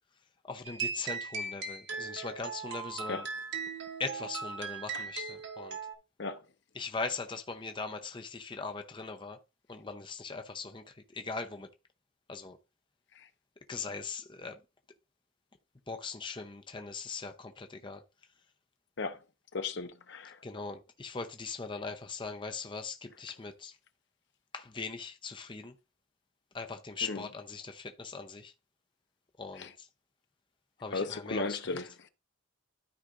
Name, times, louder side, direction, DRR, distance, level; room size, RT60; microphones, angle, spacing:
voice 1, 0.5-3.2 4.0-5.8 6.8-9.4 9.7-10.8 11.1-11.7 12.3-12.6 13.7-14.6 15.9-18.0 20.4-23.7 24.5-25.7 26.5-28.5 29.4-29.7 30.8-31.6, left 4 dB, 25° left, 0.6 m, -40 dB
sound 1, 0.6-5.9, right 5 dB, 55° right, 1.6 m, -38 dB
voice 2, 19.5-20.4 27.0-27.3 29.5-29.7 30.9-32.1, left 3 dB, 55° left, 0.7 m, -36 dB
13.0 x 4.9 x 2.5 m
head